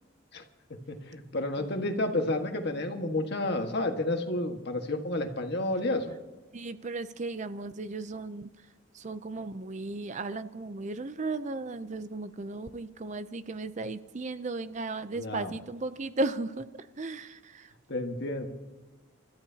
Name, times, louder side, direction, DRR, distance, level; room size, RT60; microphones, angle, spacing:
voice 1, 0.7-6.1 15.2-15.5 17.9-18.5, left 2 dB, 50° left, 4 dB, 1.6 m, -31 dB
voice 2, 6.5-8.5 8.9-17.7, right 3 dB, 35° right, 12 dB, 0.5 m, -35 dB
29.0 x 13.5 x 2.8 m, 1.2 s
head